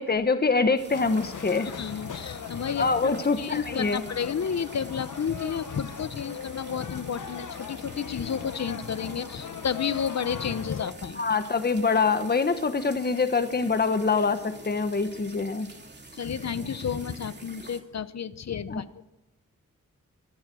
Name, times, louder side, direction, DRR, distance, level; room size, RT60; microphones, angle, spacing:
voice 1, 0.0-1.7 2.8-4.1 11.2-15.7 18.7-18.8, left 4 dB, 30° left, 10 dB, 1.2 m, -25 dB
sound 1, 0.8-17.8, right 3 dB, 35° right, 2.8 m, -47 dB
sound 2, 0.9-10.9, left 7 dB, 75° left, 1.2 m, -39 dB
voice 2, 1.8-11.3 16.2-19.0, left 7 dB, 55° left, 15 dB, 0.9 m, -31 dB
24.0 x 14.0 x 7.7 m, 0.99 s
wide cardioid pair, 105°, 31 cm